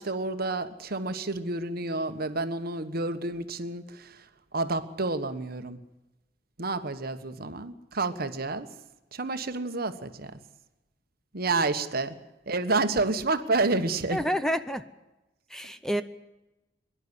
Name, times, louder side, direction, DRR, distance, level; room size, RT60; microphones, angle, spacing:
voice 1, 0.0-5.8 6.6-8.7 9.1-10.4 11.3-12.2 12.5-14.2, right 3 dB, 55° right, 9 dB, 1.4 m, -29 dB
voice 2, 14.1-14.8 15.5-16.0, equal, 5° left, 10 dB, 0.7 m, -28 dB
23.0 x 11.5 x 9.8 m, 1.0 s
head